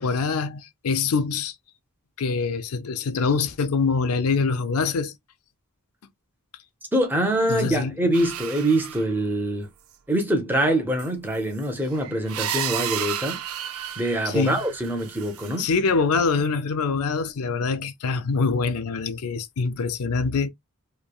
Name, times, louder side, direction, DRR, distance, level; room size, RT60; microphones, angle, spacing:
voice 1, 0.0-1.5 2.2-5.2 7.5-8.0 14.2-14.6 15.6-20.5, left 4 dB, 75° left, 0.5 m, -24 dB
voice 2, 6.9-9.7 10.1-13.4 14.0-15.7, right 1 dB, 10° right, 0.7 m, -24 dB
sound 1, 8.1-9.1 11.0-11.1 11.6-15.6, right 10 dB, 65° right, 0.4 m, -32 dB
3.1 x 2.2 x 2.2 m
head